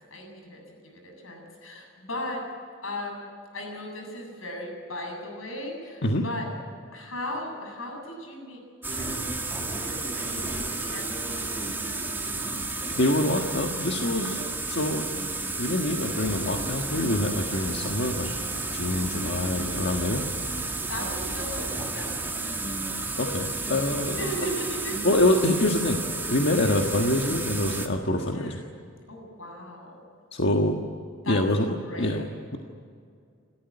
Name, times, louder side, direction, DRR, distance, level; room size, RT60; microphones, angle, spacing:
voice 1, 0.0-2.5 2.8-3.3 3.5-6.5 6.9-8.6 8.9-12.1 20.9-22.6 22.9-23.1 24.2-25.0 28.3-28.7 29.1-30.0 31.2-31.4 31.8-32.3, equal, 85° left, 1 dB, 7.9 m, -37 dB
sound 1, 8.8-27.9, right 3 dB, 10° right, 2.0 m, -32 dB
voice 2, 12.9-14.4 14.7-15.1 15.6-20.2 23.2-24.2 25.0-26.0 26.3-28.6 30.3-30.8 31.3-32.2, left 1 dB, 60° left, 2 dB, 1.6 m, -25 dB
sound 2, 16.2-21.7, equal, 25° left, 3.0 m, -43 dB
29.0 x 13.5 x 9.9 m, 2.2 s
head